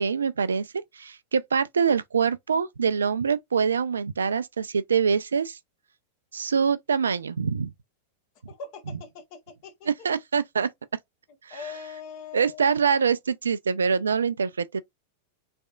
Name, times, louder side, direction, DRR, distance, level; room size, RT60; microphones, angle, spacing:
voice 1, 0.0-5.6 6.3-7.7 9.9-10.7 11.4-11.7 12.3-14.8, right 6 dB, 70° right, 0.3 m, -25 dB
voice 2, 8.5-9.9 11.5-12.7, left 6 dB, 45° left, 1.0 m, -41 dB
3.4 x 3.2 x 2.3 m
figure-of-eight pair, 90°, 0 cm